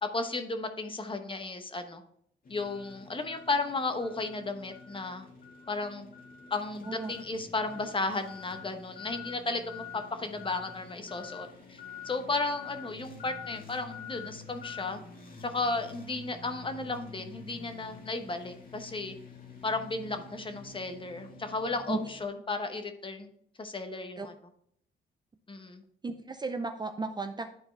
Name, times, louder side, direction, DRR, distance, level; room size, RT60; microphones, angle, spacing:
voice 1, 0.0-2.0 2.5-5.3 5.7-6.1 6.5-11.8 12.0-15.0 15.4-19.1 19.6-23.3 23.6-24.3 25.5-25.8, left 3 dB, 25° left, 7 dB, 1.0 m, -34 dB
sound 1, 2.4-22.2, left 5 dB, 45° left, 1.7 m, -47 dB
voice 2, 26.0-27.5, right 3 dB, 20° right, 7 dB, 0.5 m, -34 dB
11.0 x 4.3 x 3.2 m, 0.66 s
cardioid pair, 90°, 20 cm